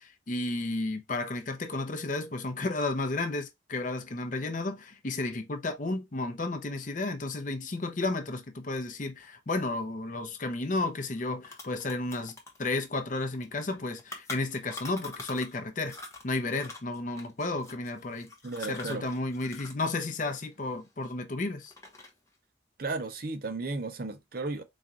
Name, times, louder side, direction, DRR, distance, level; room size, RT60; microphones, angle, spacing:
voice 1, 0.0-16.0 16.2-18.3 18.7-21.7, left 2 dB, 40° left, 0.6 m, -32 dB
sound 1, 10.8-10.9 11.2-15.6 15.9-19.9 20.1-21.3 21.7-22.3, left 3 dB, 15° left, 0.9 m, -45 dB
voice 2, 18.4-19.1 22.8-24.6, right 3 dB, 50° right, 0.6 m, -34 dB
4.2 x 2.3 x 3.6 m
head